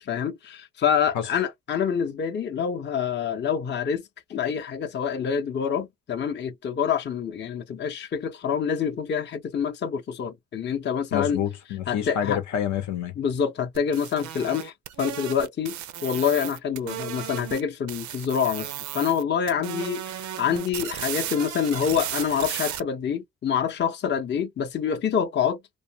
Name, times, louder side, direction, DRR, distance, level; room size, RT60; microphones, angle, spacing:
voice 1, 0.0-4.0 4.3-11.4 11.9-12.4 13.2-15.8 16.0-25.6, left 7 dB, 35° left, 0.6 m, -26 dB
voice 2, 11.1-13.1, left 9 dB, 70° left, 0.8 m, -28 dB
sound 1, 13.7-17.6 17.9-19.2 19.5-22.8, right 11 dB, 70° right, 0.5 m, -35 dB
2.4 x 2.2 x 2.7 m
cardioid pair, 90°, 30 cm